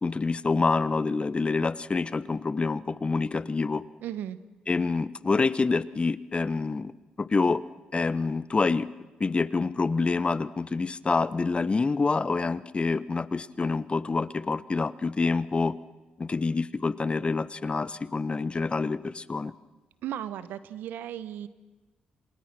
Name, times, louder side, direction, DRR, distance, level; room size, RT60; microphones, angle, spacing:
voice 1, 0.0-3.8 4.7-6.9 7.2-7.6 7.9-8.9 9.2-15.8 16.2-19.5, left 4 dB, 35° left, 17 dB, 1.1 m, -27 dB
voice 2, 4.0-4.4 20.0-21.5, right 11 dB, 80° right, 15 dB, 1.1 m, -35 dB
28.0 x 27.0 x 6.1 m, 1.2 s
supercardioid pair, 50°, 3 cm